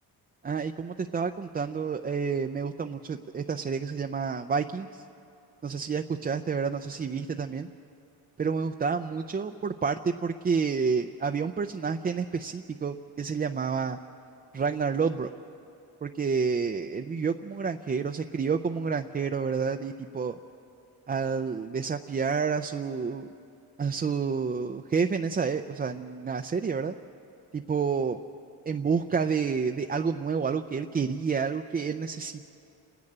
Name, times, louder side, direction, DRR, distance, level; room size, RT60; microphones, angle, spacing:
voice 1, 0.4-5.0 5.6-7.7 8.4-14.0 14.5-15.3 16.0-20.4 21.1-23.3 23.8-26.9 27.5-28.2 28.7-32.5, right 5 dB, 25° right, 5 dB, 0.5 m, -29 dB
29.0 x 10.5 x 8.7 m, 2.6 s
cardioid pair, 100°, 40 cm